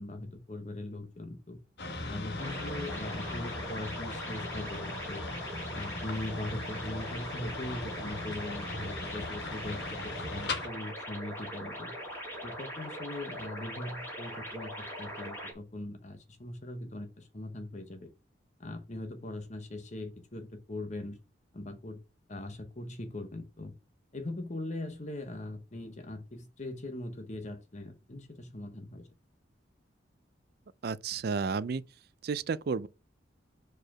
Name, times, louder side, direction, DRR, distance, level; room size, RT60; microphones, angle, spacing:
voice 1, 0.0-1.6 2.0-5.3 5.7-11.9 12.4-14.7 15.0-18.1 18.6-21.2 21.5-22.0 22.3-23.7 24.1-29.1, left 1 dB, 40° left, 0.9 m, -40 dB
sound 1, 1.8-10.7, left 2 dB, 55° left, 1.2 m, -39 dB
sound 2, 2.4-15.5, equal, 10° left, 2.3 m, -41 dB
voice 2, 30.8-31.8 32.2-32.9, right 5 dB, 55° right, 0.4 m, -32 dB
4.8 x 4.7 x 5.8 m
head